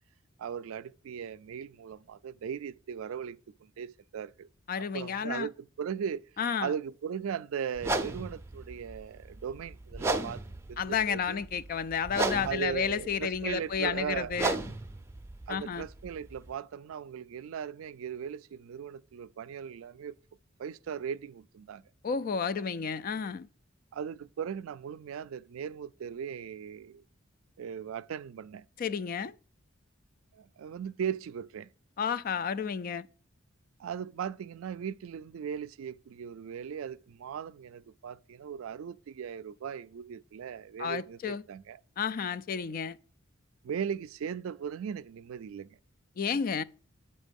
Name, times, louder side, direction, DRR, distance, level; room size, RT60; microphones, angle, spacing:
voice 1, 0.4-4.5 4.8-6.2 6.6-10.4 10.7-11.4 12.4-14.4 15.5-20.2 20.6-21.8 23.9-27.0 27.6-28.6 30.3-31.7 33.8-41.8 43.6-45.7, right 7 dB, 85° right, 0.3 m, -38 dB
voice 2, 4.7-5.5 6.4-6.7 10.8-14.5 15.5-15.9 22.0-23.5 28.8-29.3 32.0-33.1 40.8-41.4 42.0-43.0 46.2-46.6, left 6 dB, 45° left, 0.3 m, -31 dB
sound 1, 7.8-16.5, right 2 dB, 15° right, 0.5 m, -36 dB
8.2 x 4.2 x 5.2 m
head